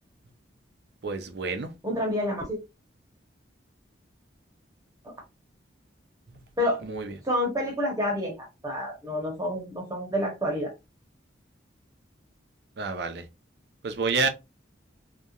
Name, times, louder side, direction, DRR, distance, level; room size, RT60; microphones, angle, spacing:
voice 1, 1.0-1.7 6.8-7.1 12.8-13.2 13.8-14.3, right 4 dB, 60° right, 0.5 m, -28 dB
voice 2, 1.8-2.6 5.0-5.1 6.6-6.8 7.2-10.7, left 1 dB, 20° right, 0.8 m, -28 dB
2.8 x 2.2 x 2.3 m
head